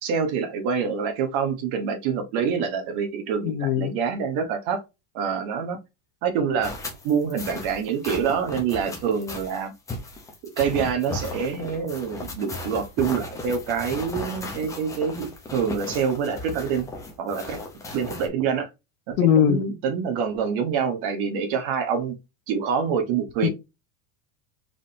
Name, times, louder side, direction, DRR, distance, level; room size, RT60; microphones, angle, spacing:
voice 1, 0.0-4.8 5.1-5.8 6.2-6.7 7.0-9.7 10.6-16.9 17.2-17.6 17.9-18.7 19.1-19.2 19.4-22.1 22.5-23.5, right 6 dB, 50° right, 1.4 m, -26 dB
voice 2, 3.4-3.9 19.2-19.6 23.4-23.5, left 9 dB, 70° left, 1.1 m, -20 dB
sound 1, 6.6-18.3, left 2 dB, 5° left, 0.6 m, -36 dB
4.7 x 3.9 x 2.7 m
cardioid pair, 180°, 44 cm